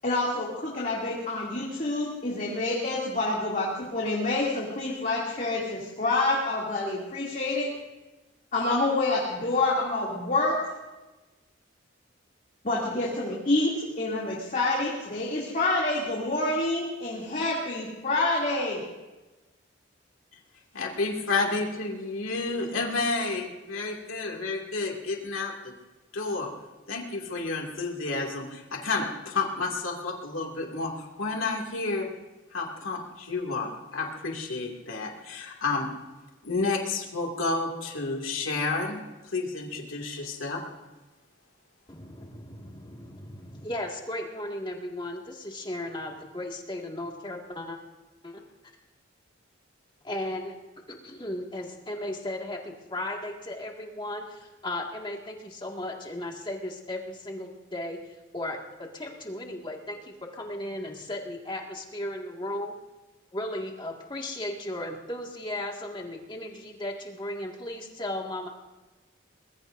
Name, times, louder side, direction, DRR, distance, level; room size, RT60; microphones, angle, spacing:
voice 1, 0.0-7.7 8.5-10.6 12.6-18.8, left 2 dB, 40° left, -5 dB, 2.8 m, -27 dB
voice 2, 20.7-25.7 26.1-26.5 26.9-32.1 32.5-35.9 36.4-39.0 39.3-40.6, left 3 dB, 90° left, 0 dB, 2.4 m, -30 dB
voice 3, 41.9-47.8 48.2-48.4 50.0-50.5 50.9-58.6 58.9-62.7 63.3-68.5, left 1 dB, 25° left, 0 dB, 2.0 m, -36 dB
24.0 x 21.0 x 2.7 m, 1.1 s
head